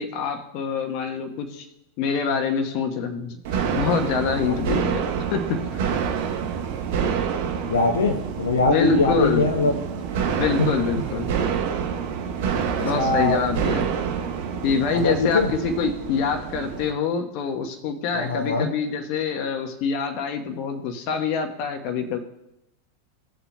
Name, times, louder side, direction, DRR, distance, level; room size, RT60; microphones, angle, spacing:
voice 1, 0.0-1.7 2.0-3.4 3.7-5.8 8.7-9.5 10.3-11.3 12.8-13.9 14.6-22.2, left 5 dB, 50° left, 5 dB, 1.1 m, -25 dB
sound 1, 3.4-16.9, right 7 dB, 55° right, 0.9 m, -27 dB
voice 2, 7.6-9.7 12.9-13.4 14.9-15.5 18.1-18.7, left 3 dB, 75° left, 2 dB, 0.9 m, -22 dB
16.0 x 7.0 x 2.3 m, 0.88 s
figure-of-eight pair, 90°, 0 cm